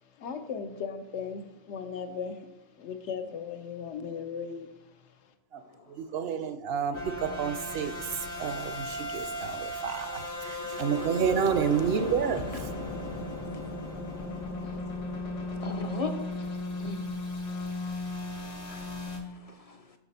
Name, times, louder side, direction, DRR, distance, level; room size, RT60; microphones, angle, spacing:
voice 1, 0.0-5.3, left 6 dB, 85° left, 7 dB, 1.0 m, -38 dB
voice 2, 5.9-7.9 8.4-12.7, right 7 dB, 65° right, 10 dB, 0.7 m, -30 dB
sound 1, 6.9-19.2, left 2 dB, 70° left, 1.6 m, -36 dB
voice 3, 15.6-16.1 16.8-17.0 18.7-19.8, left 3 dB, 45° left, 6 dB, 0.5 m, -38 dB
6.5 x 5.9 x 4.0 m, 1.0 s
omnidirectional pair, 1.2 m